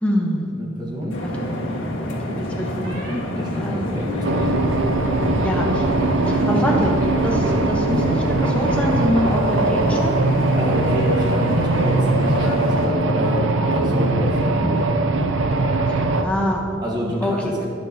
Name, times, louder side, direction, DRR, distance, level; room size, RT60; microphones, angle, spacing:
voice 1, 0.0-0.5 1.2-1.4 2.1-3.2 3.6-4.0 5.4-5.8 6.3-7.0 7.2-10.2 15.9-16.6 17.2-17.5, equal, 5° left, -2 dB, 1.1 m, -25 dB
voice 2, 0.5-1.2 3.3-4.7 6.4-6.5 7.4-7.6 10.5-14.9 16.8-17.7, equal, 20° right, -3 dB, 1.6 m, -28 dB
sound 1, 1.0-1.8 2.8-3.2 3.7-5.3 5.6-6.1, left 3 dB, 55° right, 2.3 m, -34 dB
sound 2, 1.1-12.9, left 1 dB, 75° left, 1.7 m, -27 dB
sound 3, 4.2-16.2, right 2 dB, 80° right, 0.6 m, -21 dB
18.0 x 6.5 x 2.9 m, 2.7 s
head